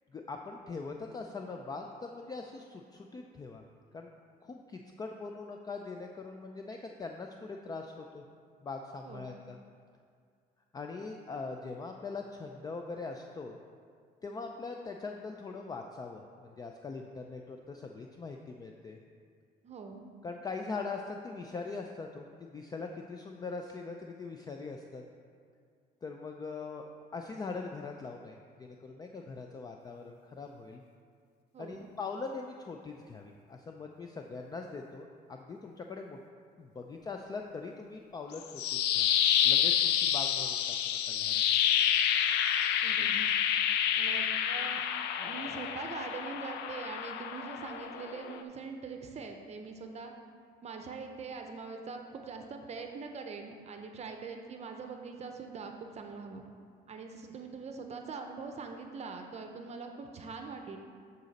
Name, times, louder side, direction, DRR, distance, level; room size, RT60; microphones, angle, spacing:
voice 1, 0.1-3.6 3.9-4.1 4.4-8.2 8.6-9.6 10.7-13.6 14.2-19.0 20.2-25.0 26.0-30.8 31.6-36.2 36.6-39.1 39.4-41.4, left 4 dB, 25° left, 3 dB, 0.4 m, -42 dB
voice 2, 19.6-20.0 31.5-31.9 42.8-43.3 43.9-44.8 45.2-50.1 50.6-56.5 56.9-60.8, right 4 dB, 40° right, 4 dB, 0.7 m, -43 dB
sound 1, 38.3-48.4, left 9 dB, 85° left, 0.5 m, -29 dB
11.5 x 4.1 x 4.1 m, 2.2 s
cardioid pair, 110°, 17 cm